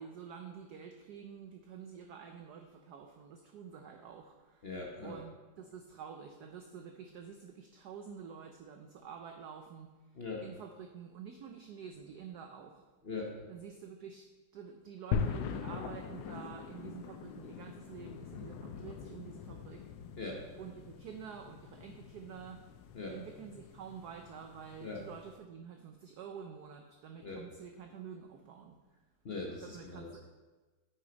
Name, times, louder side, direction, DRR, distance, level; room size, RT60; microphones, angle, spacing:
voice 1, 0.0-4.7 5.0-9.9 10.4-12.8 13.5-14.3 14.5-19.9 20.6-22.6 23.1-28.8 29.6-30.3, right 7 dB, 70° right, 4 dB, 1.0 m, -48 dB
voice 2, 4.6-5.2 10.1-10.4 13.0-13.5 20.2-20.4 22.9-23.2 24.8-25.0 27.2-27.4 29.2-30.1, left 3 dB, 45° left, -1 dB, 0.8 m, -41 dB
sound 1, 15.1-25.4, left 7 dB, 75° left, 1.2 m, -42 dB
8.8 x 6.5 x 3.9 m, 1.2 s
omnidirectional pair, 2.3 m